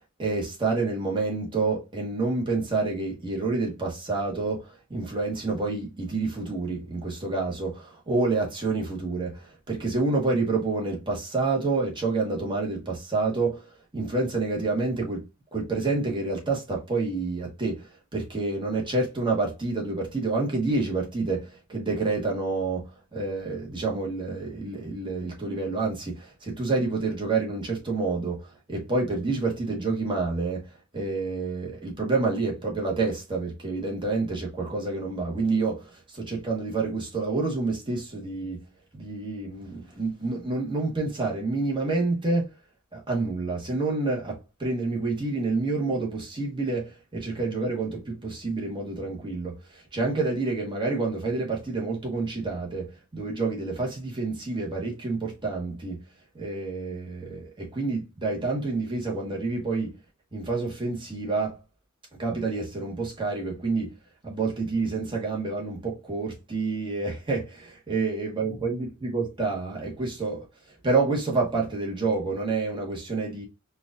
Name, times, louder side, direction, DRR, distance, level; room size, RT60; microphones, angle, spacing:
voice 1, 0.2-13.6 13.9-15.2 15.5-38.6 38.9-42.5 42.9-56.0 56.3-59.9 60.3-61.6 62.2-63.9 64.2-70.4 70.8-73.4, right 3 dB, 20° right, 1.2 m, -28 dB
4.6 x 2.5 x 2.5 m
head